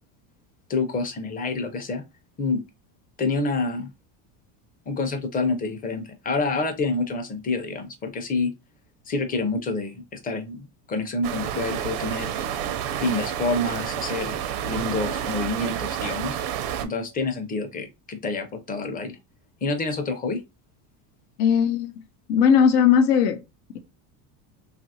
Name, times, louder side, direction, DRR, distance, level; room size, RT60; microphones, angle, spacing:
voice 1, 0.7-2.0 2.4-2.6 3.2-3.9 4.9-8.5 9.1-12.3 13.0-14.4 14.7-16.4 16.8-19.2 19.6-20.4, left 3 dB, 20° left, 0.5 m, -27 dB
sound 1, 11.2-16.9, right 9 dB, 70° right, 0.6 m, -29 dB
voice 2, 21.4-21.9 22.3-23.4, left 7 dB, 85° left, 0.7 m, -18 dB
2.8 x 2.5 x 2.7 m
supercardioid pair, 115°, 47 cm